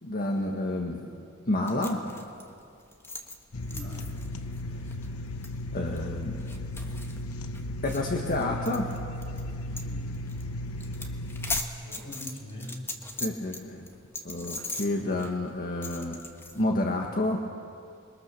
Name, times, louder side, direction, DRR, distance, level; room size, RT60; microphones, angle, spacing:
voice 1, 0.0-1.1 1.5-2.0 5.7-6.4 7.8-8.9 13.2-13.9 14.2-16.2 16.5-17.4, left 1 dB, 45° left, 1 dB, 1.7 m, -29 dB
sound 1, 1.7-9.4 9.7-9.9 10.1-10.4 10.7-13.6 13.9-16.6, left 2 dB, 10° left, 1.5 m, -39 dB
sound 2, 3.5-11.6, left 1 dB, 80° left, 1.1 m, -35 dB
voice 2, 3.7-4.1 9.8-10.3 11.8-12.8, left 1 dB, 60° left, -2 dB, 6.8 m, -42 dB
27.5 x 22.0 x 6.9 m, 2.4 s
head